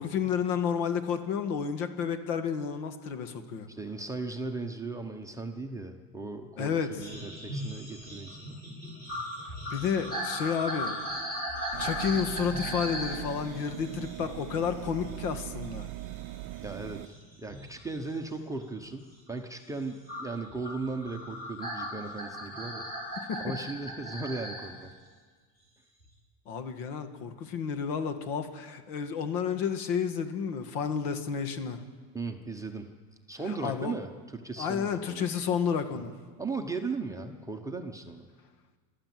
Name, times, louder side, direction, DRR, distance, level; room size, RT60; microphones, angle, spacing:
voice 1, 0.0-3.7 6.6-6.9 9.7-10.9 11.8-15.9 23.3-23.5 26.5-31.8 33.6-33.9 34.6-36.1, left 7 dB, 70° left, 8 dB, 2.1 m, -31 dB
voice 2, 3.7-8.6 16.6-22.9 23.4-24.9 32.1-32.9 33.3-35.2 35.9-36.0 36.4-38.3, right 3 dB, 5° right, 3 dB, 0.8 m, -37 dB
sound 1, 7.0-15.3 15.6-18.0 18.5-18.9 20.1-24.7 26.0-26.1, equal, 20° left, 6.2 m, -38 dB
sound 2, 11.7-17.1, right 17 dB, 40° right, 0.6 m, -41 dB
27.0 x 13.0 x 7.7 m, 1.5 s
cardioid pair, 160°, 48 cm